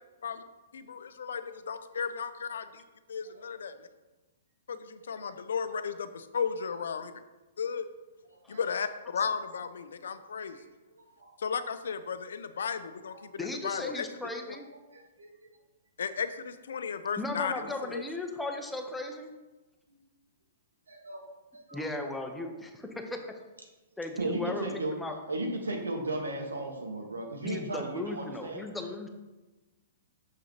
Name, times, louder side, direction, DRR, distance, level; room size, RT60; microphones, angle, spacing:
voice 1, 0.7-1.4 1.7-2.8 3.1-3.7 4.7-7.1 7.6-7.9 8.5-10.6 11.4-13.1 13.6-14.1 16.0-17.6 17.9-18.0, left 6 dB, 70° left, 11 dB, 0.5 m, -34 dB
voice 2, 3.2-3.7 5.0-5.3 5.9-6.0 8.2-8.6 9.2-9.3 10.5-10.7 10.9-11.3 13.1-13.3 14.9-15.3 17.6-17.8 19.9-20.0 20.9-21.3 21.5-21.8 22.4-22.5 24.2-24.9 25.3-28.7, right 2 dB, 80° right, 2 dB, 1.4 m, -36 dB
voice 3, 13.4-14.6 17.2-19.3 21.7-23.3 24.0-24.6 24.9-25.2 27.4-29.1, left 2 dB, 5° left, 3 dB, 0.8 m, -36 dB
6.6 x 6.2 x 2.9 m, 1.1 s
hypercardioid pair, 120°, 0 cm